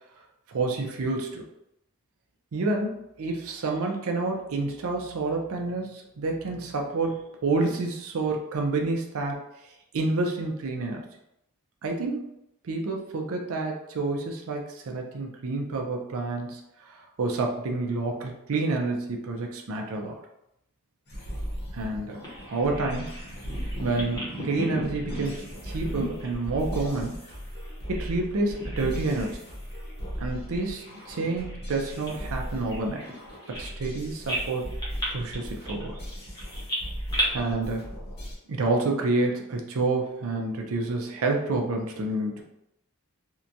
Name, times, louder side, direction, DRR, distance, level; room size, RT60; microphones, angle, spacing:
voice 1, 0.5-1.4 2.5-9.4 9.9-11.1 11.8-12.3 12.6-16.6 16.9-20.2 21.7-23.2 23.8-27.2 27.9-29.4 30.2-33.1 33.5-34.7 35.1-36.0 37.3-37.8 38.5-42.4, right 3 dB, 65° right, 2 dB, 0.5 m, -29 dB
sound 1, 21.1-38.3, equal, 50° left, 0.8 m, -37 dB
Bird vocalization bird call bird song, 22.2-28.2 28.5-29.4 29.7-29.9 30.5-33.9 34.3-37.2, right 1 dB, 20° left, 0.8 m, -36 dB
2.8 x 2.2 x 2.5 m, 0.83 s
head